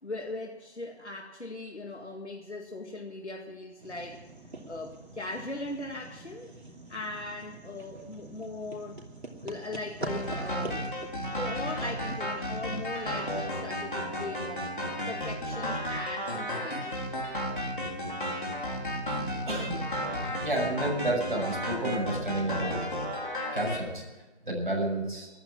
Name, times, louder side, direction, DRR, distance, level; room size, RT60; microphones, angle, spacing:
voice 1, 0.0-4.2 4.7-6.5 6.9-9.0 9.4-10.9 11.4-14.7 15.1-17.0, left 2 dB, 85° left, 3 dB, 2.1 m, -39 dB
sound 1, 3.8-13.5, right 2 dB, 70° right, 2.9 m, -44 dB
sound 2, 10.1-23.8, equal, 50° left, 3.7 m, -33 dB
voice 2, 19.5-19.9 20.3-22.8 23.5-24.0 24.4-25.3, right 1 dB, 50° right, -2 dB, 7.1 m, -30 dB
14.5 x 11.5 x 7.4 m, 1.1 s
figure-of-eight pair, 180°, 33 cm